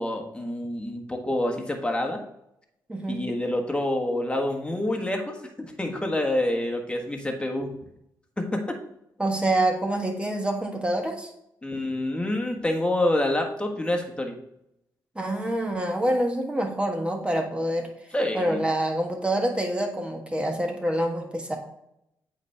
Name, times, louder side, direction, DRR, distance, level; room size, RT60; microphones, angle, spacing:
voice 1, 0.0-2.2 3.1-7.7 8.5-8.7 11.6-14.3 18.1-18.6, left 1 dB, 15° left, 2 dB, 1.4 m, -27 dB
voice 2, 2.9-3.2 9.2-11.3 15.1-17.9 18.3-21.6, right 1 dB, 15° right, 2 dB, 1.4 m, -26 dB
8.2 x 4.1 x 3.5 m, 0.79 s
cardioid pair, 70°, 7 cm